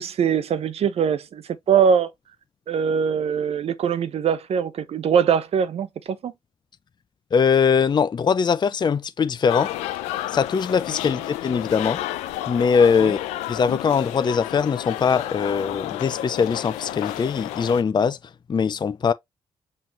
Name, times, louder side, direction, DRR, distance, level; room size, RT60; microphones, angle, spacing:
voice 1, 0.0-1.4 1.7-2.1 2.7-6.3 13.0-13.1, right 7 dB, 65° right, 0.8 m, -22 dB
voice 2, 7.3-9.7 10.3-12.0 12.5-13.2 13.5-18.2 18.5-19.1, left 6 dB, 40° left, 0.5 m, -21 dB
sound 1, 9.5-17.8, left 14 dB, 85° left, 0.5 m, -31 dB
5.6 x 3.2 x 2.8 m
hypercardioid pair, 45°, 11 cm